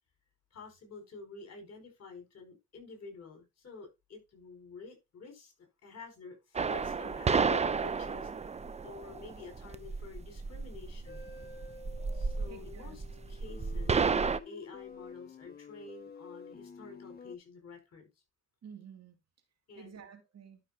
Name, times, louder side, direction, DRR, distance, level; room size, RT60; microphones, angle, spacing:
voice 1, 0.5-5.5 5.8-8.5 8.8-11.2 12.1-14.1 14.4-18.1 19.7-20.1, left 4 dB, 55° left, 4.8 m, -49 dB
sound 1, 6.6-14.4, right 5 dB, 20° right, 0.6 m, -32 dB
sound 2, 11.1-17.4, left 4 dB, 30° left, 1.3 m, -50 dB
voice 2, 12.5-13.3 18.6-19.2 19.8-20.6, right 7 dB, 60° right, 2.3 m, -51 dB
12.0 x 6.1 x 2.7 m
cardioid pair, 90°, 30 cm